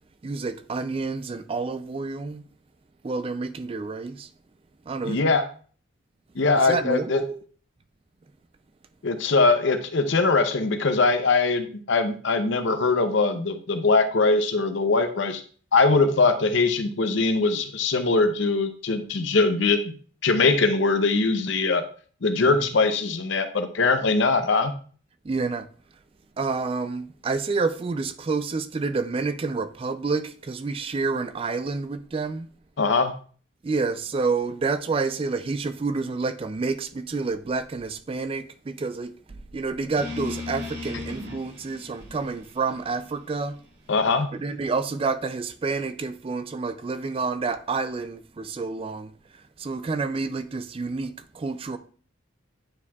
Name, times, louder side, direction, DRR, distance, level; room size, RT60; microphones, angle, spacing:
voice 1, 0.2-2.4 3.0-4.3 4.9-5.2 6.6-7.4 22.4-22.6 25.2-25.7 26.4-32.5 33.6-43.6 44.4-49.1 49.6-51.8, right 4 dB, 25° right, 0.3 m, -29 dB
voice 2, 5.0-5.5 6.4-7.2 9.0-15.4 15.7-19.9 20.2-21.8 22.2-24.7 32.8-33.1 43.9-44.3, left 3 dB, 65° left, 0.7 m, -22 dB
sound 1, 40.0-44.1, left 3 dB, 55° right, 1.7 m, -38 dB
9.6 x 4.5 x 2.3 m
head